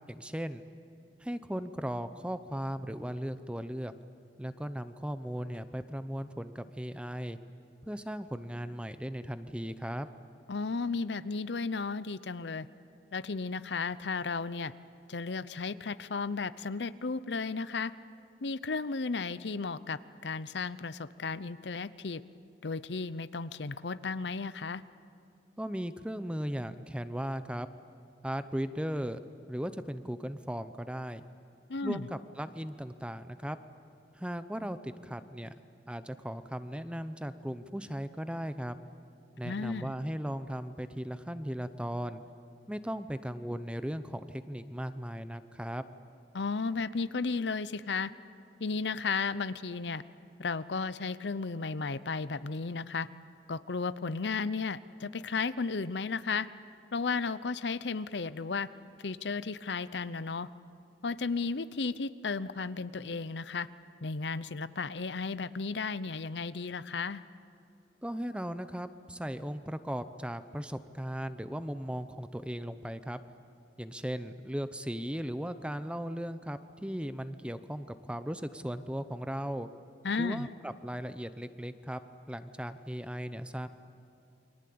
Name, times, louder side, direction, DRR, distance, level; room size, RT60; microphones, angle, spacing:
voice 1, 0.1-0.6 1.2-3.9 4.4-7.4 7.8-10.1 25.6-27.7 28.2-29.2 29.5-31.2 31.8-33.6 34.1-35.5 35.9-38.8 39.4-42.2 42.7-45.8 68.0-73.2 73.8-79.7 80.2-82.0 82.3-83.7, equal, 5° right, 11 dB, 0.8 m, -37 dB
voice 2, 10.5-12.7 13.1-14.7 15.1-17.9 18.4-22.2 22.6-24.8 31.7-32.1 39.4-39.9 46.3-48.1 48.6-50.0 50.4-53.1 53.5-56.5 56.9-58.7 59.0-60.5 61.0-63.7 64.0-67.2 80.0-80.5, left 4 dB, 75° left, 15 dB, 0.7 m, -34 dB
29.0 x 23.5 x 8.7 m, 2.5 s
head